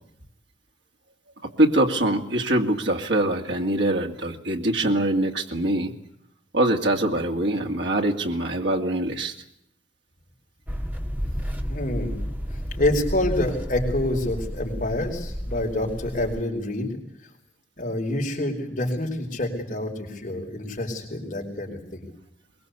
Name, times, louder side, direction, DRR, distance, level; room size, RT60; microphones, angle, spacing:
voice 1, 1.4-5.9 6.5-9.3, right 1 dB, 80° right, 2 dB, 2.4 m, -23 dB
sound 1, 10.7-16.4, equal, 10° right, 1.8 m, -31 dB
voice 2, 11.7-12.2 12.8-16.9 17.8-22.1, left 1 dB, 45° left, 0 dB, 5.0 m, -27 dB
23.0 x 22.5 x 8.3 m, 0.75 s
head